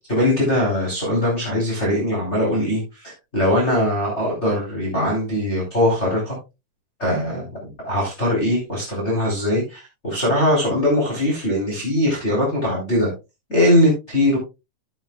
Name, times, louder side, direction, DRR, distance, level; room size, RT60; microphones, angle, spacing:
voice 1, 0.1-6.4 7.0-13.1 13.5-14.4, left 1 dB, 20° left, -3 dB, 3.9 m, -21 dB
13.5 x 8.0 x 2.3 m, 0.26 s
omnidirectional pair, 3.8 m